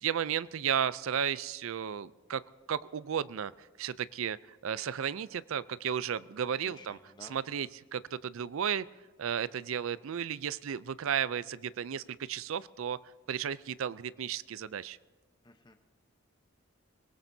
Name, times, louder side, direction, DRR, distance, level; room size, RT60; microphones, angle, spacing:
voice 1, 0.0-2.4 2.7-8.9 9.2-13.0 13.3-15.0, right 8 dB, 75° right, 18 dB, 0.4 m, -34 dB
voice 2, 6.6-7.7 15.4-15.7, left 3 dB, 20° left, 6 dB, 0.9 m, -54 dB
25.0 x 17.5 x 2.7 m, 1.3 s
head